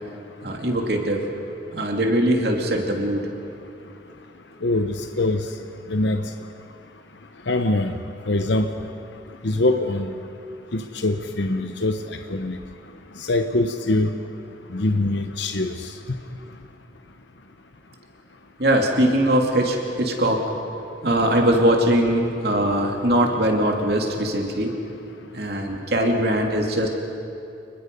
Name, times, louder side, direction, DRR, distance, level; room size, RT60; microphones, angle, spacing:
voice 1, 0.4-1.2 1.7-3.2 18.6-20.4 21.0-24.7 25.3-26.9, right 1 dB, 55° right, 1 dB, 2.7 m, -21 dB
voice 2, 4.6-5.5 5.9-6.2 7.5-7.9 8.2-8.9 9.4-10.1 10.7-12.6 13.2-14.1 14.7-15.9, left 2 dB, 70° left, 7 dB, 0.9 m, -23 dB
29.5 x 21.5 x 5.4 m, 2.8 s
head